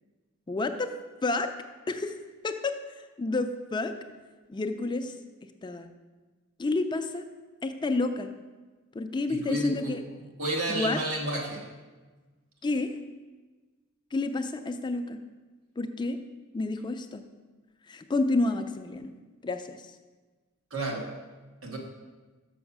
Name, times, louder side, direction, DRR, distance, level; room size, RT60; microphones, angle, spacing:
voice 1, 0.5-0.9 1.2-1.5 1.9-2.2 2.4-2.8 3.2-3.9 4.5-5.1 5.6-5.9 6.6-7.2 7.6-8.3 8.9-10.0 10.7-11.0 12.6-13.0 14.1-15.2 15.8-16.2 16.5-17.2 17.9-19.1 19.4-19.8, left 2 dB, 20° left, 8 dB, 0.4 m, -29 dB
voice 2, 9.3-9.9 10.4-11.6 20.7-21.1 21.6-21.8, right 1 dB, 85° right, -1 dB, 1.6 m, -31 dB
6.3 x 5.8 x 5.9 m, 1.3 s
head